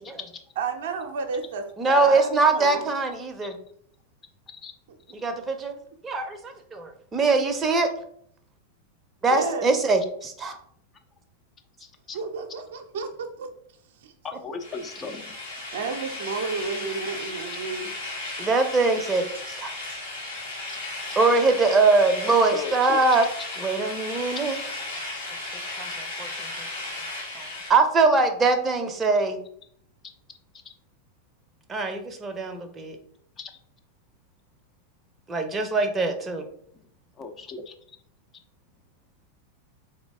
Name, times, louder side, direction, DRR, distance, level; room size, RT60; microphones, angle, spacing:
voice 1, 0.6-2.8 7.3-7.4 9.3-9.7 12.1-13.5 14.0-14.1 15.7-17.9, right 4 dB, 55° right, 5 dB, 0.5 m, -31 dB
voice 2, 1.8-3.6 5.1-5.8 6.0-7.9 9.2-10.6 18.4-19.7 21.2-23.3 23.6-24.6 25.8-26.5 27.3-29.4 31.7-33.0 35.3-36.5, right 3 dB, 20° right, 6 dB, 0.6 m, -22 dB
voice 3, 11.8-12.2 14.2-15.3 20.7-20.8 22.4-23.0 24.3-24.4 30.6-30.7 33.4-33.5 37.2-37.7, left 4 dB, 25° left, 5 dB, 0.5 m, -37 dB
sound 1, 14.6-27.7, left 2 dB, 70° left, 1.8 m, -35 dB
3.8 x 3.1 x 3.5 m, 0.64 s
figure-of-eight pair, 90°, 0 cm